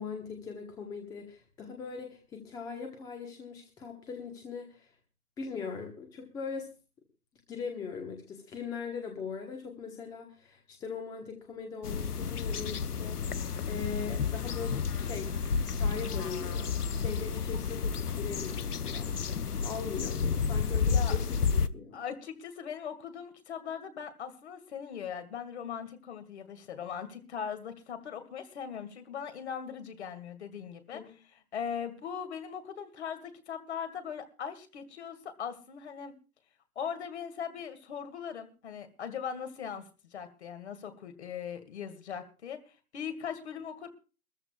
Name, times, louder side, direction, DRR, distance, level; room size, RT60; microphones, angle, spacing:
voice 1, 0.0-4.9 5.4-6.7 7.5-15.3 15.6-22.0 30.9-31.1, left 5 dB, 10° left, 3 dB, 1.2 m, -40 dB
sound 1, 11.8-21.7, left 5 dB, 85° left, 0.8 m, -31 dB
voice 2, 20.8-21.2 21.9-31.0 31.5-36.1 36.8-43.9, left 7 dB, 45° left, 8 dB, 2.2 m, -40 dB
22.5 x 14.0 x 2.4 m, 0.34 s
figure-of-eight pair, 140°, 45 cm